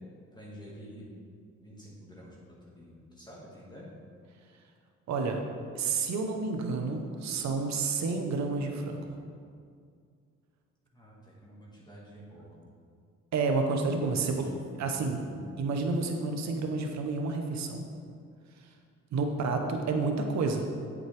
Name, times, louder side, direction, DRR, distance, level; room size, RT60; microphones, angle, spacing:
voice 1, 0.3-1.1 1.6-3.9 10.9-12.6 14.2-14.6 15.0-15.3, equal, 15° left, -5 dB, 1.9 m, -49 dB
voice 2, 5.1-5.4 5.7-9.1 13.3-14.5 14.8-15.2 15.6-17.8 19.1-20.7, right 4 dB, 65° right, 3 dB, 1.0 m, -30 dB
8.1 x 7.4 x 3.4 m, 2.2 s
cardioid pair, 90°, 30 cm